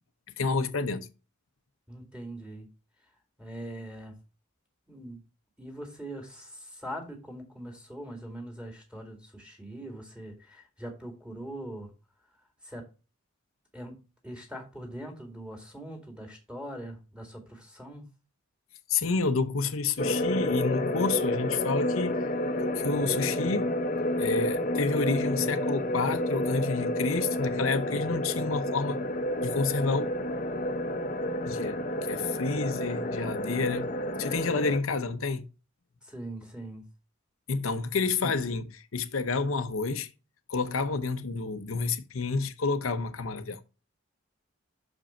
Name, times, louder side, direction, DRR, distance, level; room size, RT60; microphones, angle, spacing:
voice 1, 0.4-1.1 18.9-22.3 22.8-23.7 24.2-29.0 29.4-30.1 31.5-33.9 34.2-35.4 37.5-40.1 40.5-43.6, left 4 dB, 75° left, 0.8 m, -29 dB
voice 2, 1.9-2.7 3.4-4.1 4.9-5.2 5.6-11.9 12.6-12.8 13.7-13.9 14.2-18.1 36.0-36.8, right 1 dB, 5° right, 2.1 m, -42 dB
sound 1, 20.0-34.8, left 1 dB, 40° left, 0.8 m, -30 dB
6.2 x 5.1 x 4.3 m
head